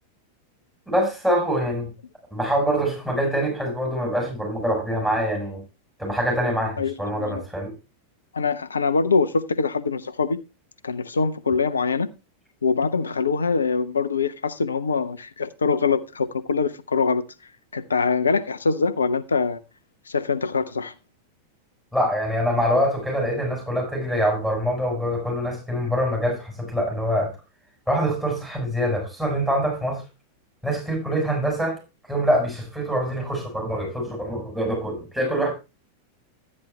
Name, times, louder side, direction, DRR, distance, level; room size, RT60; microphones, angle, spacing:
voice 1, 0.9-1.9 2.3-5.6 6.0-7.7 21.9-27.3 27.9-30.0 30.6-31.8 32.1-35.5, equal, 5° right, 6.3 m, -24 dB
voice 2, 6.8-7.4 8.3-10.4 10.8-12.1 12.6-17.2 17.7-19.6 20.1-20.9, left 4 dB, 75° left, 0.8 m, -23 dB
12.0 x 9.7 x 3.2 m
figure-of-eight pair, 90°, 0 cm